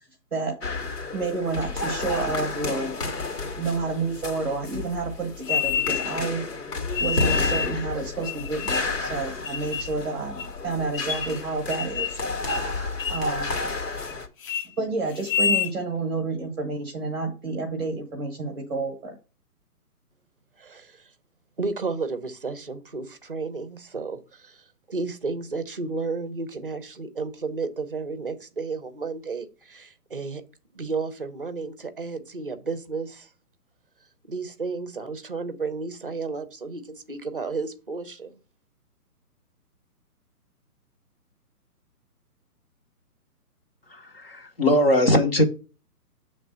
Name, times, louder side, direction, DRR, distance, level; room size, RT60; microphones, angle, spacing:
sound 1, 0.6-14.3, left 3 dB, 80° left, 2.2 m, -31 dB
voice 1, 1.1-3.0 3.6-6.4 7.0-12.2 13.1-13.5 14.8-19.1, right 3 dB, 15° right, 0 dB, 0.9 m, -29 dB
sound 2, 5.4-6.3 6.9-7.8 8.2-9.0 9.4-9.9 10.4-10.5 10.9-11.4 11.7-12.2 12.5-12.7 13.0-13.3 13.7-14.1 14.4-14.7 15.2-15.7, left 6 dB, 60° left, 0.5 m, -28 dB
voice 2, 20.6-21.1 21.6-30.4 30.7-33.3 34.3-38.3, right 4 dB, 35° right, 11 dB, 0.6 m, -32 dB
voice 3, 43.9-45.4, left 1 dB, 40° left, 5 dB, 0.9 m, -20 dB
7.4 x 3.3 x 5.4 m, 0.34 s
hypercardioid pair, 175°, 47 cm